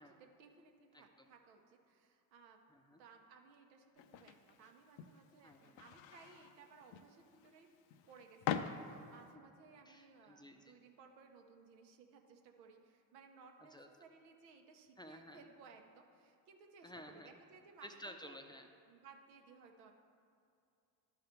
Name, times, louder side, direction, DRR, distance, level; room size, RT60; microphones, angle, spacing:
voice 1, 0.0-2.6 3.0-7.7 8.1-17.9 18.2-18.4 18.9-19.9, right 5 dB, 90° right, 3 dB, 0.9 m, -61 dB
voice 2, 0.9-1.3 2.7-3.0 5.4-5.8 9.9-10.8 13.6-13.9 15.0-15.4 16.8-17.3 17.8-18.7, equal, 10° left, 5 dB, 0.6 m, -54 dB
sound 1, 4.0-9.3, left 8 dB, 60° left, 0.6 m, -45 dB
11.5 x 4.0 x 4.4 m, 2.5 s
hypercardioid pair, 60°, 49 cm